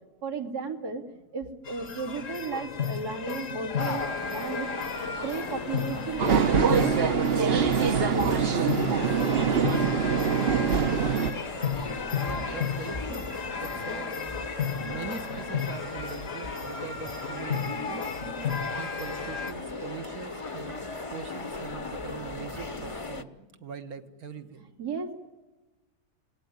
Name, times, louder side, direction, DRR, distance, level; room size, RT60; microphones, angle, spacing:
voice 1, 0.2-1.0 1.3-4.7 5.2-9.3 13.3-13.5 20.8-20.9 23.3-23.5 24.6-25.2, right 4 dB, 85° right, -2 dB, 3.3 m, -35 dB
sound 1, 1.6-19.5, left 6 dB, 55° left, 1.7 m, -34 dB
sound 2, 3.8-23.2, left 3 dB, 25° left, 1.1 m, -37 dB
sound 3, 6.2-11.3, right 6 dB, 45° right, 1.1 m, -24 dB
voice 2, 12.2-13.3 13.6-14.4 14.8-18.1 18.7-20.8 21.1-23.3 23.6-24.6, right 6 dB, 65° right, 8 dB, 2.0 m, -42 dB
30.0 x 18.5 x 9.4 m, 1.2 s
omnidirectional pair, 1.7 m